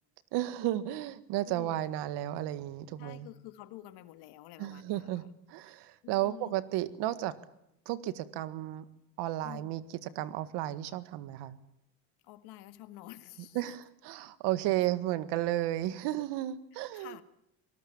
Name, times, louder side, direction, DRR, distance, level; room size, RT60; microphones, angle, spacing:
voice 1, 0.3-3.3 4.6-7.3 7.9-8.8 9.2-11.6 13.5-17.2, right 14 dB, 75° right, 13 dB, 1.8 m, -33 dB
voice 2, 1.5-1.8 3.0-5.3 6.0-6.6 9.4-9.7 12.2-13.7 16.9-17.2, left 15 dB, 70° left, 11 dB, 1.8 m, -49 dB
26.0 x 19.0 x 8.8 m, 0.78 s
cardioid pair, 155°, 41 cm